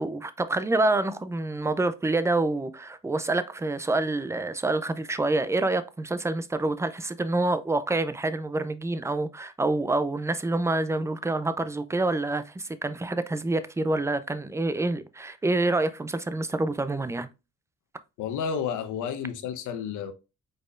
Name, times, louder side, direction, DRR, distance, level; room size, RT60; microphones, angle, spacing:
voice 1, 0.0-17.3, right 2 dB, 10° right, 0.4 m, -27 dB
voice 2, 18.2-20.1, left 7 dB, 80° left, 0.8 m, -31 dB
5.1 x 4.2 x 2.4 m
cardioid pair, 90°, 30 cm